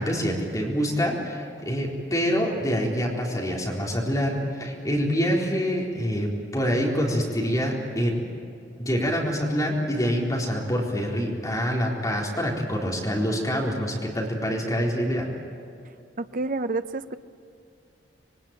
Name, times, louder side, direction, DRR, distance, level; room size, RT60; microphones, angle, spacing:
voice 1, 0.0-8.2 8.8-15.3, equal, 20° left, -2 dB, 4.2 m, -26 dB
voice 2, 16.2-17.2, right 3 dB, 50° right, 10 dB, 0.9 m, -29 dB
26.0 x 22.5 x 9.0 m, 2.5 s
head